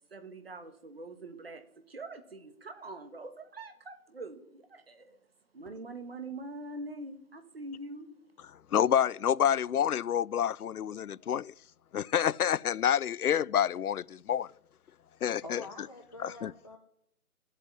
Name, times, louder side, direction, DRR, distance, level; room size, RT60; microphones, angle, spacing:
voice 1, 0.1-5.2 5.5-8.1, right 2 dB, 40° right, 1.6 m, -44 dB
voice 2, 8.7-11.5 11.9-14.5 15.2-15.6 16.2-16.5, left 9 dB, 80° left, 0.5 m, -28 dB
voice 3, 15.4-16.8, left 2 dB, 20° left, 0.9 m, -46 dB
13.0 x 8.5 x 9.8 m
figure-of-eight pair, 170°, 44 cm